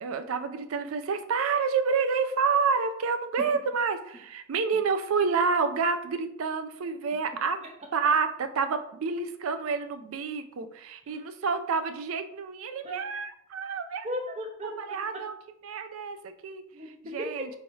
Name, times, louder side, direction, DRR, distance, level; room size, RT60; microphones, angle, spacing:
voice 1, 0.0-7.6 7.9-14.1 14.8-15.3 15.6-16.6 17.1-17.5, right 5 dB, 70° right, 9 dB, 0.4 m, -28 dB
voice 2, 14.0-15.2 16.7-17.5, equal, 30° right, 1 dB, 0.8 m, -37 dB
3.2 x 2.7 x 4.5 m, 0.74 s
head